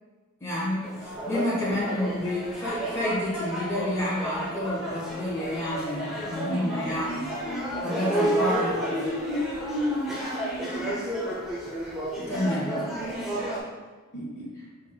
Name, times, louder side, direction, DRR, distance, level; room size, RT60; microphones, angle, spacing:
voice 1, 0.4-7.2 7.8-9.0 12.2-12.7, left 1 dB, 15° left, -10 dB, 1.3 m, -29 dB
sound 1, 0.8-13.6, right 1 dB, ahead, 0.8 m, -32 dB
voice 2, 6.4-11.3 12.3-13.7 14.1-14.5, equal, 55° left, -3 dB, 1.1 m, -34 dB
4.8 x 3.6 x 2.2 m, 1.3 s
head